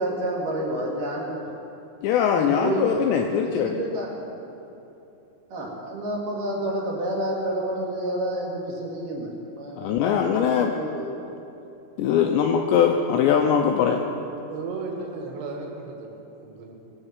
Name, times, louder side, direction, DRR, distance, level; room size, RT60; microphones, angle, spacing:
voice 1, 0.0-1.5 2.3-3.0 3.4-4.1 5.5-11.1, right 1 dB, 50° right, -3 dB, 3.2 m, -29 dB
voice 2, 2.0-3.7 9.8-10.8 12.0-14.0, left 8 dB, 85° left, 3 dB, 2.5 m, -21 dB
voice 3, 14.5-16.7, right 3 dB, 90° right, 1 dB, 4.5 m, -35 dB
19.0 x 9.0 x 7.4 m, 2.9 s
omnidirectional pair, 5.8 m